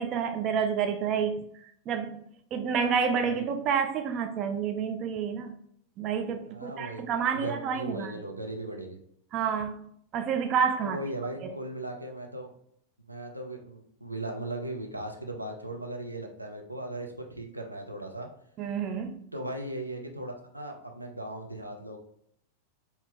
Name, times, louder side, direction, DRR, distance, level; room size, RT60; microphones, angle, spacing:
voice 1, 0.0-1.5 1.9-2.2 2.5-5.5 6.0-8.1 9.3-11.0 11.4-11.5 18.6-19.2, right 7 dB, 35° right, 0.4 m, -29 dB
voice 2, 6.5-7.0 7.3-9.0 10.8-12.5 13.1-18.3 19.3-22.0, right 1 dB, 85° right, 0.6 m, -38 dB
4.6 x 2.7 x 3.6 m
figure-of-eight pair, 90°, 0 cm